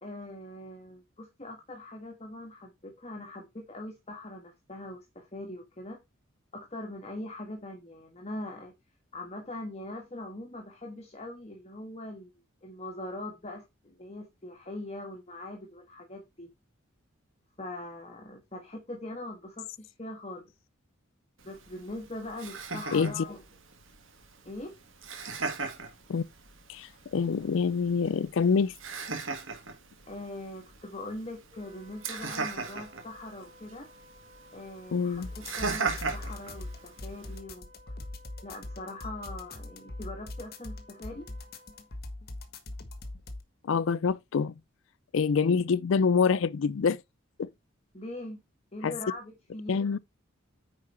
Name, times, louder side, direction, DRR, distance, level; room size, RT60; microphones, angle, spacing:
voice 1, 0.0-6.0 6.5-8.7 9.1-12.3 12.6-16.5 17.6-20.5 21.4-23.4 24.4-24.7 30.1-33.9 34.5-37.6 38.4-41.3 47.9-48.4 48.7-49.7, left 1 dB, 30° left, 1.5 m, -41 dB
Laughter, 21.4-37.4, right 4 dB, 75° right, 2.3 m, -39 dB
voice 2, 22.9-23.2 26.1-26.2 26.7-28.7 34.9-35.3 43.6-44.5 45.1-47.0 47.4-47.5 48.8-48.9 49.7-50.0, left 5 dB, 65° left, 0.4 m, -26 dB
Wind instrument woodwind instrument, 31.5-41.9, left 1 dB, 25° right, 2.7 m, -57 dB
sound 1, 35.1-43.4, left 2 dB, 50° left, 1.5 m, -41 dB
9.6 x 4.6 x 4.2 m
head